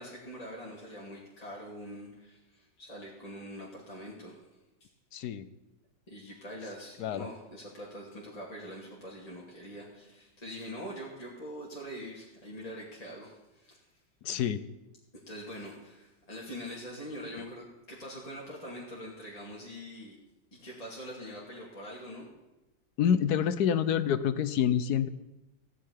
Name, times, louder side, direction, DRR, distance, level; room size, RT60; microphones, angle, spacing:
voice 1, 0.0-4.4 6.1-13.8 15.3-20.2 20.6-22.3, equal, 20° left, -5 dB, 2.5 m, -44 dB
voice 2, 5.1-5.5 7.0-7.3 14.2-14.6 23.0-25.1, left 8 dB, 65° left, 14 dB, 1.1 m, -27 dB
15.5 x 6.6 x 9.8 m, 0.99 s
omnidirectional pair, 2.1 m